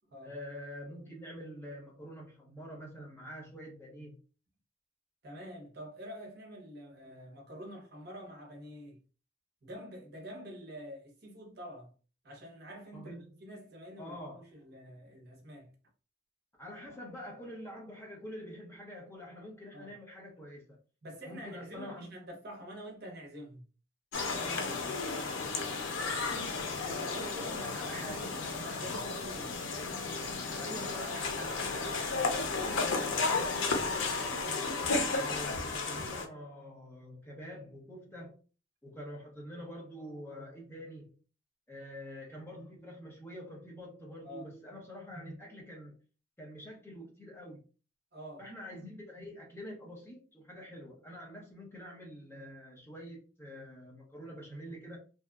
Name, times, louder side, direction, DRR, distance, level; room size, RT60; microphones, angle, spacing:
voice 1, 0.2-4.2 12.9-13.3 14.0-14.5 16.6-20.8 21.3-22.1 24.4-24.9 27.4-28.3 30.5-34.7 35.2-38.3 38.8-41.1 41.7-46.0 46.4-47.6 48.4-55.0, equal, 10° left, 0.7 m, -46 dB
voice 2, 5.2-9.0 9.6-11.9 12.2-14.2 14.5-15.7 19.7-19.9 21.0-23.6 25.1-25.5 26.7-29.7 44.2-44.5 48.1-48.5, equal, 55° right, 0.8 m, -47 dB
sound 1, 24.1-36.3, left 3 dB, 90° left, 0.5 m, -33 dB
2.7 x 2.3 x 2.3 m
head